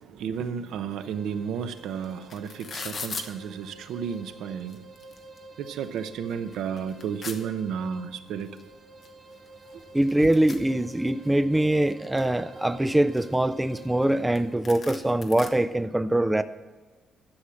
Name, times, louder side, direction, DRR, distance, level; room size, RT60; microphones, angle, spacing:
voice 1, 0.0-4.9 5.6-8.6 10.2-10.4, right 7 dB, 75° right, 0.7 m, -32 dB
sound 1, 1.0-14.6, right 2 dB, 40° right, 1.5 m, -49 dB
sound 2, 1.8-1.9 2.0-3.3 4.1-4.2 4.6-5.4 5.8-5.9 6.3-7.4 8.6-8.7 9.0-9.1 9.3-11.3 11.7-12.4 12.9-14.1 14.3-14.4 14.6-15.5, left 5 dB, 35° left, 1.1 m, -39 dB
voice 2, 9.9-16.4, right 1 dB, 5° right, 0.3 m, -23 dB
11.5 x 7.3 x 6.4 m
cardioid pair, 165°, 0 cm